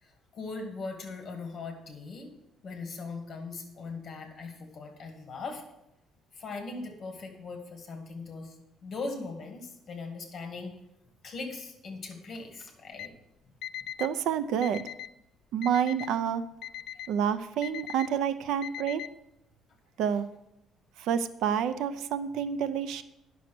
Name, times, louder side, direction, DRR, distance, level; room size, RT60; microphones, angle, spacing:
voice 1, 0.0-2.3 2.6-5.6 6.3-8.5 8.8-10.7 11.2-13.1 16.9-17.0, left 3 dB, 30° left, 4 dB, 1.9 m, -40 dB
Alarm, 12.9-13.1 13.6-14.1 14.6-15.1 15.6-16.1 16.6-17.1 17.6-18.1 18.6-19.1, left 11 dB, 60° left, 0.3 m, -39 dB
voice 2, 14.0-14.9 15.5-16.4 17.1-19.0 20.0-20.3 21.0-23.0, right 8 dB, 70° right, 12 dB, 0.5 m, -28 dB
10.0 x 6.2 x 6.0 m, 0.86 s
cardioid pair, 165°, 0 cm